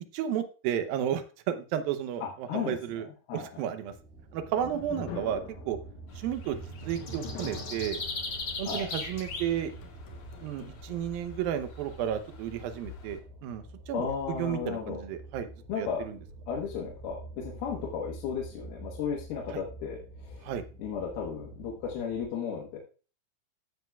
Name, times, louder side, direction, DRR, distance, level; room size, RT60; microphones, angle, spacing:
voice 1, 0.1-3.1 3.3-3.9 4.3-5.4 5.7-5.8 6.2-8.0 8.6-9.7 10.4-15.5 15.8-16.2 19.5-19.6 20.4-20.6, right 9 dB, 75° right, 10 dB, 2.5 m, -33 dB
voice 2, 2.2-3.0 3.3-3.4 8.7-8.9 13.9-15.0 15.7-16.1 16.5-20.4 20.8-22.8, left 6 dB, 80° left, -1 dB, 3.3 m, -34 dB
sound 1, 3.8-22.3, right 2 dB, 55° right, 3.4 m, -47 dB
sound 2, 4.1-11.3, left 4 dB, 60° left, 2.5 m, -45 dB
sound 3, 6.1-13.2, left 3 dB, 45° left, 2.1 m, -40 dB
15.0 x 7.9 x 2.3 m, 0.36 s
omnidirectional pair, 4.4 m